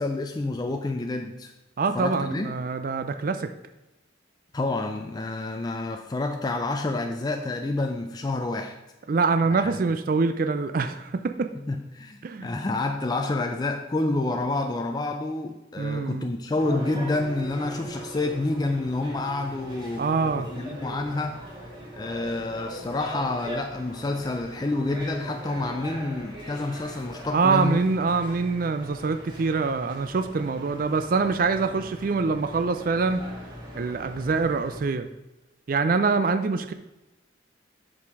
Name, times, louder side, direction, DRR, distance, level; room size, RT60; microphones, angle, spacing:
voice 1, 0.0-1.5 1.9-2.5 4.5-8.8 9.5-9.8 11.7-20.1 20.4-21.5 21.9-27.8, left 2 dB, 20° left, 4 dB, 0.4 m, -28 dB
voice 2, 1.8-3.5 9.1-11.5 12.2-12.5 15.8-16.3 20.0-20.5 27.3-33.3 33.8-35.1 35.7-36.7, right 4 dB, 45° right, 10 dB, 0.4 m, -25 dB
sound 1, 16.6-34.8, right 1 dB, 25° right, 2.4 m, -40 dB
6.2 x 5.9 x 4.7 m, 1.0 s
head